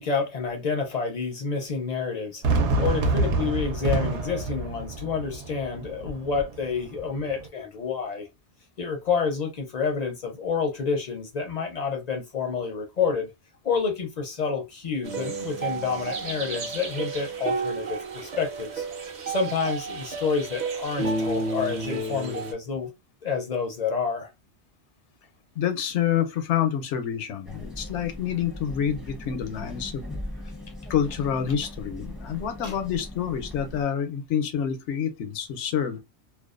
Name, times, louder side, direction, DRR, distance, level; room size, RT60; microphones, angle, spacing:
voice 1, 0.0-2.4 2.8-8.3 8.8-13.3 13.6-18.9 19.3-22.9 23.2-24.3 32.6-32.8, left 5 dB, 50° left, 0.5 m, -29 dB
Fireworks, 2.4-7.5, right 2 dB, 80° right, 1.0 m, -27 dB
sound 1, 15.0-22.5, right 3 dB, 45° right, 0.7 m, -31 dB
voice 2, 25.6-30.2 30.9-36.0, left 8 dB, 85° left, 0.9 m, -27 dB
sound 2, 27.4-33.8, left 1 dB, ahead, 0.4 m, -39 dB
2.5 x 2.2 x 2.3 m
omnidirectional pair, 1.1 m